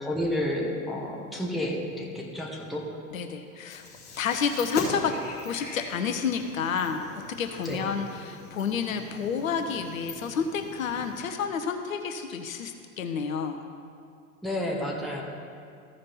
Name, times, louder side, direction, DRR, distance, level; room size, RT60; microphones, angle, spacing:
voice 1, 0.0-2.9 7.6-7.9 14.4-15.2, left 1 dB, ahead, -2 dB, 1.2 m, -30 dB
voice 2, 3.1-3.9 4.2-5.1 5.4-13.6, left 6 dB, 70° left, 6 dB, 0.8 m, -30 dB
sound 1, 3.7-11.2, left 4 dB, 20° left, 2.5 m, -41 dB
14.5 x 5.2 x 4.2 m, 2.4 s
figure-of-eight pair, 95°, 43 cm